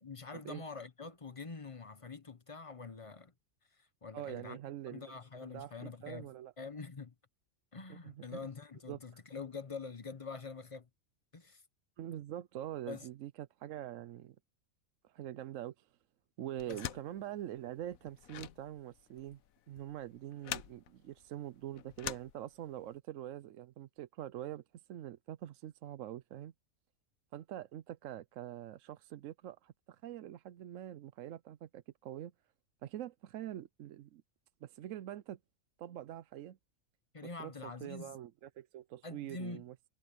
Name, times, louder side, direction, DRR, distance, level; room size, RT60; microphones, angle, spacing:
voice 1, 0.0-3.3 3.8-4.6 4.9-6.3 6.6-7.1 7.7-10.9 11.3-11.6 12.9-13.1 16.7-16.8 37.1-38.2 39.0-39.6, left 4 dB, 30° left, 0.8 m, -45 dB
voice 2, 4.1-5.0 5.4-6.5 7.9-8.4 8.9-9.0 12.0-14.4 15.0-15.9 16.4-19.4 19.7-26.5 27.3-32.3 32.8-34.2 34.6-35.4 35.8-36.6 37.4-39.7, right 12 dB, 70° right, 1.0 m, -44 dB
sound 1, 16.6-22.9, left 11 dB, 90° left, 1.2 m, -46 dB
omnidirectional pair, 1.4 m